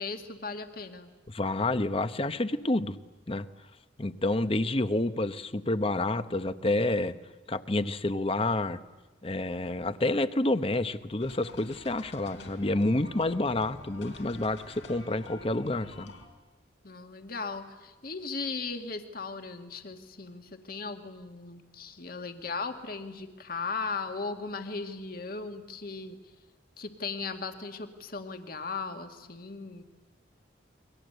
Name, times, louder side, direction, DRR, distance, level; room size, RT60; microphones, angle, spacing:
voice 1, 0.0-1.1 16.8-26.2 26.8-29.8, left 4 dB, 55° left, 6 dB, 2.1 m, -37 dB
voice 2, 1.3-3.0 3.3-3.5 4.0-7.2 7.5-8.8 9.2-16.1, left 2 dB, 30° left, 11 dB, 1.0 m, -29 dB
sound 1, 11.2-16.3, left 2 dB, 85° left, 4.2 m, -48 dB
30.0 x 23.0 x 8.1 m, 1.2 s
head